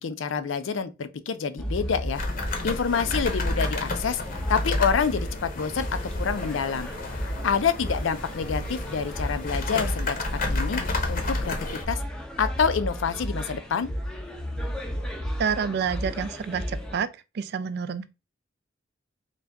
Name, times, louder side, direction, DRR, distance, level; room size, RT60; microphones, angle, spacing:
voice 1, 0.0-2.2 2.6-10.2 10.5-10.8 11.1-12.0 12.4-13.9, left 6 dB, 75° left, 0.5 m, -27 dB
sound 1, 1.6-17.0, equal, 5° left, 0.5 m, -34 dB
sound 2, 2.1-11.9, left 2 dB, 45° left, 0.8 m, -31 dB
voice 2, 15.4-17.1 17.3-18.1, right 6 dB, 55° right, 0.4 m, -28 dB
3.9 x 2.3 x 3.4 m
head